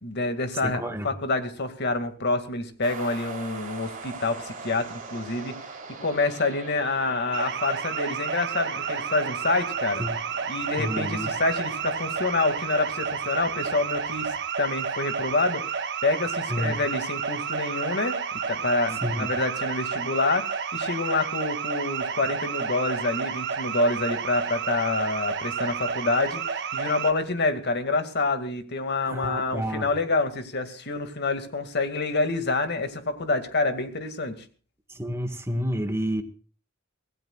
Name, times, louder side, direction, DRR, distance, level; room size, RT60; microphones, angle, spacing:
voice 1, 0.0-5.6 6.0-10.0 10.5-14.3 14.6-18.2 18.5-34.4, left 3 dB, 55° left, 8 dB, 2.3 m, -27 dB
voice 2, 0.6-1.1 10.0-10.1 10.8-11.3 16.5-16.7 19.0-19.3 29.1-29.9 34.9-36.2, equal, 15° right, 7 dB, 1.8 m, -29 dB
sound 1, 2.8-14.4, right 4 dB, 40° right, 3.8 m, -43 dB
sound 2, 7.3-27.1, right 6 dB, 55° right, 1.5 m, -31 dB
25.5 x 17.5 x 2.4 m, 0.40 s
head